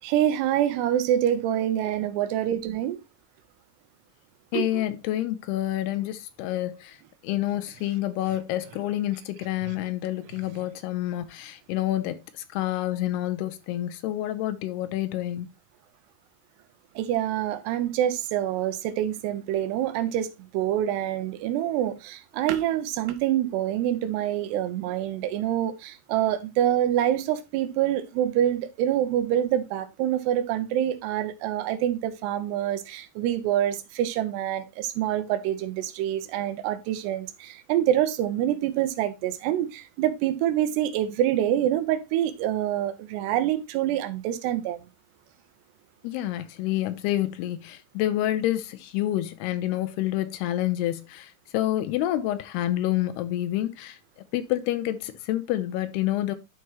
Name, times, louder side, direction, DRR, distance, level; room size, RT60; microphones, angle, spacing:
voice 1, 0.0-3.0 4.5-4.8 17.0-44.8, right 11 dB, 90° right, 2.9 m, -26 dB
voice 2, 4.5-7.0 7.2-12.2 12.5-15.5 46.0-54.0 54.3-56.4, left 14 dB, 90° left, 2.7 m, -28 dB
12.0 x 4.7 x 2.9 m
omnidirectional pair, 4.7 m